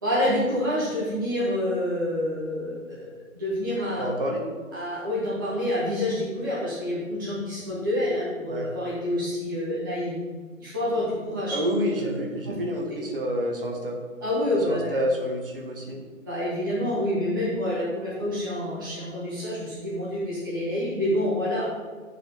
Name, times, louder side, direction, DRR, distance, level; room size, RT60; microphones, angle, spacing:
voice 1, 0.0-3.1 3.3-4.1 4.7-10.1 10.6-11.6 12.0-12.1 12.5-12.6 14.2-15.0 16.2-21.7, left 1 dB, 15° right, -8 dB, 0.7 m, -27 dB
voice 2, 4.0-4.4 8.5-8.7 11.5-14.0 14.7-16.0, equal, 40° right, 1 dB, 1.1 m, -28 dB
9.0 x 4.2 x 3.5 m, 1.4 s
figure-of-eight pair, 155°, 41 cm